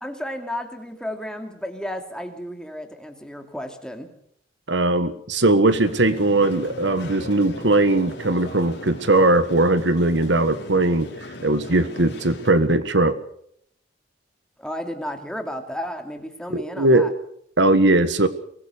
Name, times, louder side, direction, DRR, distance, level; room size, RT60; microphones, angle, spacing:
voice 1, 0.0-4.1 14.6-17.1, equal, 5° left, 5 dB, 2.6 m, -33 dB
voice 2, 4.7-11.1 11.4-13.2 16.5-17.1 17.6-18.3, right 2 dB, 75° right, 12 dB, 1.6 m, -19 dB
sound 1, 5.7-12.5, left 1 dB, 60° left, 5.2 m, -38 dB
23.5 x 20.0 x 6.6 m, 0.67 s
head